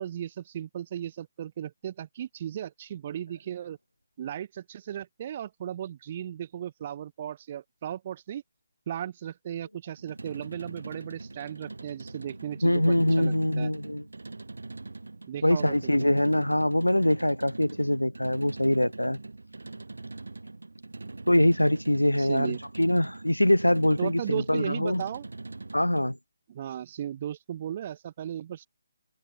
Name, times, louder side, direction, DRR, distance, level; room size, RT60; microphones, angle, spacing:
voice 1, 0.0-3.8 4.2-8.4 8.9-13.7 15.3-16.1 21.3-21.4 22.2-22.6 24.0-25.3 26.5-28.7, right 10 dB, 35° right, 2.8 m, -36 dB
sound 1, 10.0-26.1, right 3 dB, 70° right, 8.0 m, -42 dB
voice 2, 12.6-14.0 15.4-19.2 21.3-25.0 25.7-26.2, left 1 dB, 85° left, 3.4 m, -24 dB
figure-of-eight pair, 145°, 0 cm